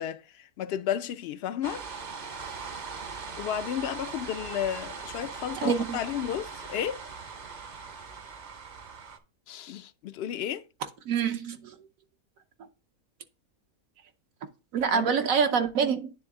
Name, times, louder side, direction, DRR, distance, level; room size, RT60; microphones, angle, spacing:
voice 1, 0.0-1.8 3.4-7.0 9.5-10.6 14.9-15.1, left 10 dB, 70° left, 0.6 m, -33 dB
sound 1, 1.6-9.2, right 5 dB, 45° right, 0.6 m, -40 dB
voice 2, 5.5-6.0 11.1-11.8 14.7-16.1, right 6 dB, 70° right, 1.1 m, -26 dB
9.7 x 3.5 x 3.6 m
omnidirectional pair, 1.5 m